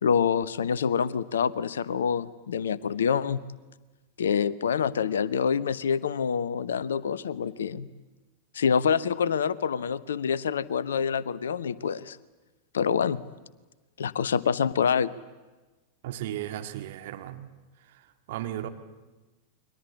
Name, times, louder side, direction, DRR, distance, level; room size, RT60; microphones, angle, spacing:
voice 1, 0.0-3.4 4.2-7.9 8.5-12.2 12.7-13.2 14.0-15.1, left 7 dB, 65° left, 18 dB, 0.8 m, -26 dB
voice 2, 16.0-17.5 18.3-18.7, right 12 dB, 55° right, 6 dB, 2.0 m, -35 dB
30.0 x 23.0 x 8.5 m, 1.2 s
figure-of-eight pair, 90°, 0 cm